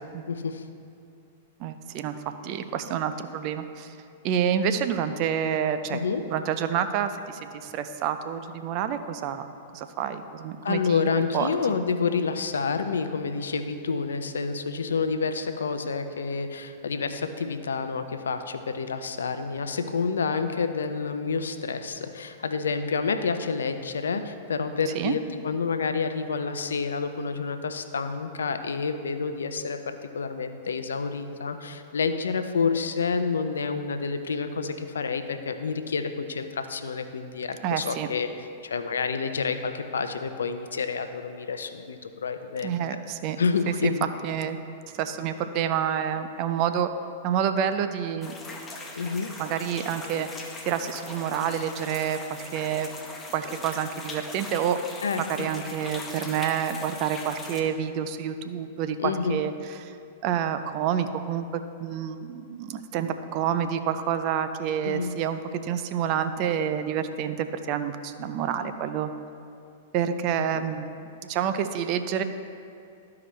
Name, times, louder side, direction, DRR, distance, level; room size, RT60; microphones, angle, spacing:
voice 1, 0.3-0.6 5.9-6.2 10.6-38.3 38.6-42.7 43.4-44.1 48.9-49.3 55.0-55.2 59.0-59.4 64.8-65.1 70.5-70.6, left 5 dB, 80° left, 9 dB, 0.5 m, -29 dB
voice 2, 1.6-4.0 4.2-6.0 6.3-9.5 9.7-11.1 11.3-11.5 24.9-25.1 37.6-38.1 42.6-43.4 43.7-44.6 44.9-46.9 47.2-48.3 49.4-52.9 53.3-54.8 55.3-60.0 60.2-69.1 69.9-70.9 71.2-72.2, right 8 dB, 45° right, 9 dB, 0.5 m, -28 dB
sound 1, 48.2-57.6, left 3 dB, 15° left, 0.9 m, -40 dB
12.5 x 4.8 x 3.1 m, 2.5 s
hypercardioid pair, 105°, 0 cm